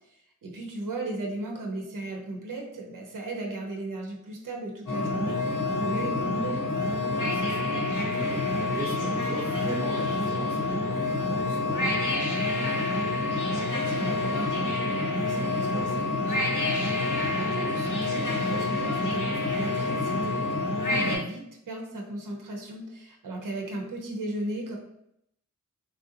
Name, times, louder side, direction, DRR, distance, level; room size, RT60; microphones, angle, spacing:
voice 1, 0.1-5.4 5.7-6.7 13.5-20.4 20.8-24.8, right 2 dB, 85° right, 0 dB, 0.6 m, -36 dB
sound 1, 4.9-21.2, left 2 dB, 75° left, 1.0 m, -27 dB
voice 2, 6.8-12.2 17.1-17.4, right 2 dB, 30° right, -5 dB, 0.5 m, -39 dB
3.3 x 2.5 x 2.7 m, 0.77 s
wide cardioid pair, 100°, 31 cm